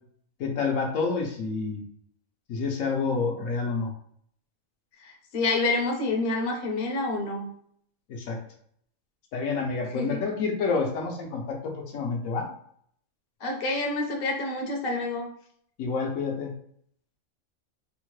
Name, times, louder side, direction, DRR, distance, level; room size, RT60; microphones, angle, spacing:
voice 1, 0.4-1.8 2.5-3.9 8.1-8.4 9.3-12.5 15.8-16.5, left 4 dB, 75° left, 1 dB, 1.0 m, -28 dB
voice 2, 5.0-7.5 9.9-10.2 13.4-15.3, left 2 dB, 50° left, 1 dB, 0.7 m, -28 dB
3.5 x 2.0 x 3.0 m, 0.64 s
omnidirectional pair, 1.5 m